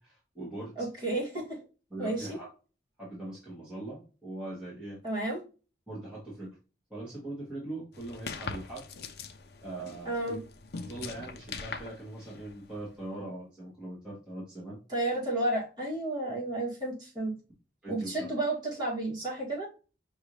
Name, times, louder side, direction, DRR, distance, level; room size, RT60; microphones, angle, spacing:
voice 1, 0.0-0.9 1.9-2.5 3.0-5.0 5.9-6.6 6.9-8.9 9.6-10.4 10.9-14.8 17.8-18.1, right 2 dB, 5° right, -8 dB, 1.4 m, -41 dB
voice 2, 0.8-1.6 2.0-2.4 5.0-5.4 10.1-10.4 14.9-17.3 17.9-19.7, right 2 dB, 25° right, -5 dB, 2.0 m, -32 dB
sound 1, 7.9-12.9, left 4 dB, 60° left, 0.5 m, -42 dB
5.4 x 2.6 x 3.1 m, 0.34 s
head